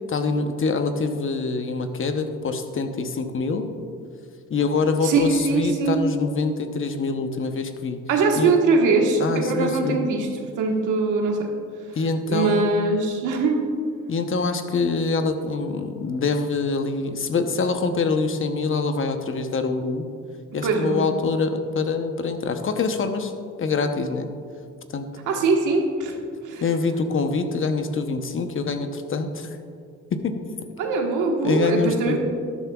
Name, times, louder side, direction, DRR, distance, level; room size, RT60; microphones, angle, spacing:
voice 1, 0.1-3.7 4.5-8.0 8.4-8.5 9.2-10.0 11.9-12.7 14.1-20.0 20.5-23.3 23.6-24.3 24.9-25.1 26.6-29.5 30.1-30.4 31.4-32.2, left 4 dB, 45° left, 7 dB, 0.9 m, -25 dB
voice 2, 5.0-6.0 8.1-10.3 10.6-11.5 12.3-13.6 20.6-21.1 25.3-26.1 26.4-26.6 30.8-32.2, right 4 dB, 90° right, 1 dB, 1.4 m, -22 dB
13.0 x 11.0 x 2.4 m, 2.2 s
cardioid pair, 90°, 30 cm